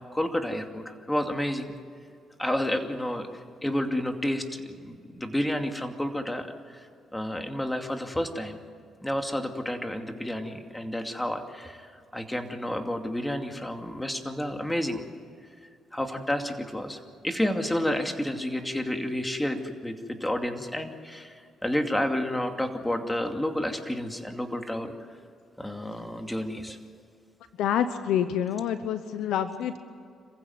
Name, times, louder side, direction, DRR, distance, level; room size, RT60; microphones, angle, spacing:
voice 1, 0.0-1.7 2.4-3.3 3.6-6.8 7.1-8.6 9.0-15.0 15.9-24.9 25.6-26.8, left 1 dB, 10° left, 5 dB, 2.5 m, -30 dB
voice 2, 27.6-29.8, left 9 dB, 85° left, 10 dB, 0.9 m, -27 dB
27.0 x 15.5 x 9.4 m, 2.3 s
cardioid pair, 90°, 0 cm